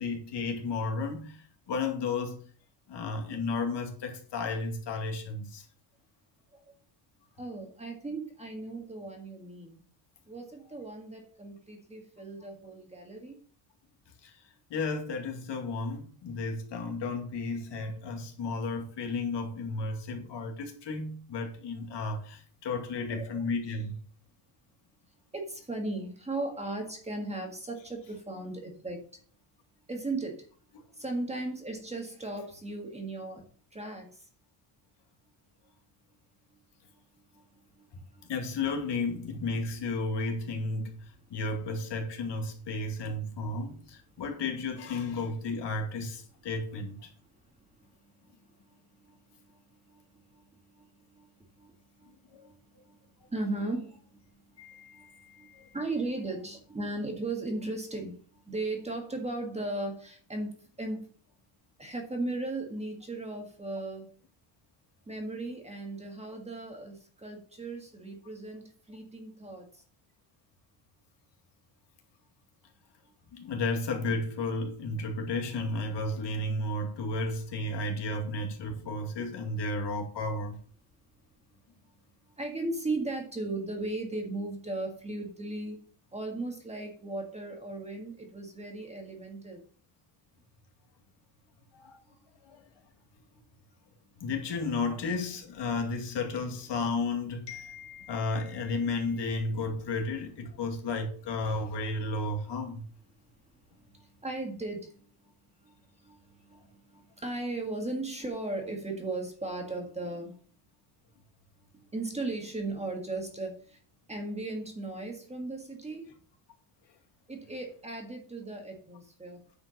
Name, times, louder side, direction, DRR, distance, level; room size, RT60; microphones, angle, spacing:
voice 1, 0.0-2.4 2.9-5.6 14.2-14.3 14.7-24.0 38.3-47.1 52.4-52.5 54.6-55.8 73.3-80.6 91.7-92.0 92.4-92.6 94.2-102.8, left 3 dB, 55° left, 2.4 m, -33 dB
voice 2, 7.4-9.8 10.3-13.4 23.1-23.4 25.3-29.0 29.9-30.5 31.0-33.4 33.7-34.1 38.1-38.3 49.5-49.6 49.9-50.0 50.3-50.4 50.8-50.9 51.1-51.3 51.6-51.7 52.0-52.1 52.4-52.5 52.9-53.0 53.3-54.0 54.9-55.1 55.4-55.5 55.7-58.2 58.5-61.1 61.8-64.1 65.1-69.7 82.4-89.6 103.9-105.0 105.6-105.7 106.0-110.3 111.9-113.8 114.1-116.1 117.3-119.4, right 2 dB, 15° right, 1.8 m, -36 dB
9.7 x 5.1 x 6.3 m
cardioid pair, 170°, 49 cm